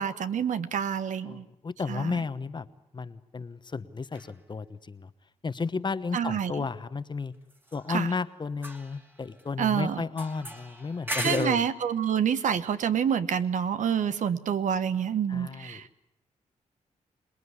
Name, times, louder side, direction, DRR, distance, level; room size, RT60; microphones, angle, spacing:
voice 1, 0.0-1.4 1.9-2.1 6.1-6.6 7.9-8.1 9.6-10.0 11.2-15.9, right 8 dB, 75° right, 12 dB, 1.3 m, -27 dB
voice 2, 1.2-2.7 2.9-5.1 5.4-7.3 7.7-11.7 15.3-15.8, left 4 dB, 35° left, 13 dB, 1.1 m, -33 dB
sound 1, 4.1-4.3 7.5-8.3 8.5-9.6 10.2-11.7, right 1 dB, 15° right, 2.4 m, -38 dB
27.0 x 20.0 x 9.8 m, 0.85 s
cardioid pair, 85°, 13 cm